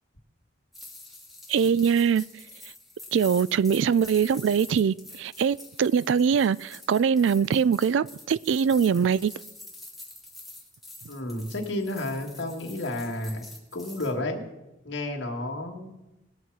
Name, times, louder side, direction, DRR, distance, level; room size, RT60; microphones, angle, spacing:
sound 1, 0.7-14.1, left 2 dB, ahead, 2.1 m, -46 dB
voice 1, 1.5-2.2 3.1-9.3, right 7 dB, 70° right, 0.3 m, -23 dB
voice 2, 11.1-13.4 13.7-14.4 14.8-16.0, left 1 dB, 65° left, 2.0 m, -31 dB
20.5 x 7.4 x 4.8 m
head